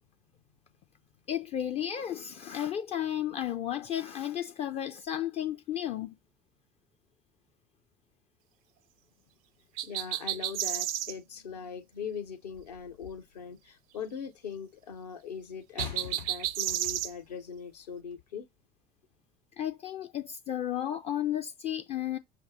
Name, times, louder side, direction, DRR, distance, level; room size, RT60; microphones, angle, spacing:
voice 1, 1.3-6.2 19.6-22.2, left 11 dB, 30° left, 0.4 m, -33 dB
voice 2, 9.8-18.5, left 6 dB, 70° left, 1.0 m, -41 dB
sound 1, 9.8-11.1 15.8-17.1, right 13 dB, 60° right, 0.5 m, -31 dB
sound 2, 12.5-13.4 15.8-17.3 18.1-18.2, left 6 dB, 90° left, 2.0 m, -44 dB
5.8 x 2.1 x 3.9 m
figure-of-eight pair, 65°, 21 cm